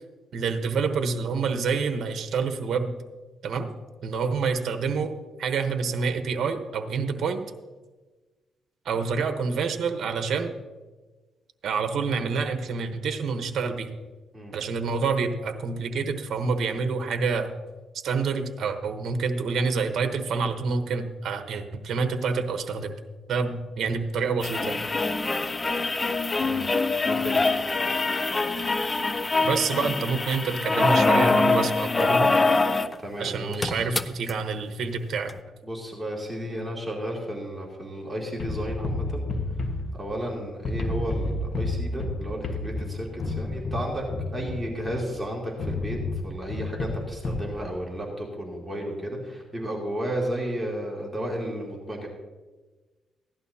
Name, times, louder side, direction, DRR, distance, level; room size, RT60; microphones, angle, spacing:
voice 1, 0.3-3.0 3.4-3.7 4.0-5.1 5.4-7.4 8.8-10.5 11.6-13.9 14.5-17.5 18.0-22.9 23.3-24.8 29.4-32.3 33.2-35.3, right 5 dB, 65° right, 6 dB, 1.0 m, -27 dB
sound 1, 24.4-33.0 33.3-33.4 33.5-34.3 35.3-35.4, left 3 dB, 25° left, 0.5 m, -24 dB
voice 2, 27.0-27.4 33.0-33.9 35.6-39.2 40.0-44.0 44.3-46.0 46.2-52.1, equal, 15° right, -3 dB, 2.5 m, -33 dB
sound 2, 38.4-40.3 40.6-45.1 45.6-47.5, left 2 dB, 50° left, 1.5 m, -30 dB
16.0 x 11.5 x 2.8 m, 1.3 s
cardioid pair, 90°, 0 cm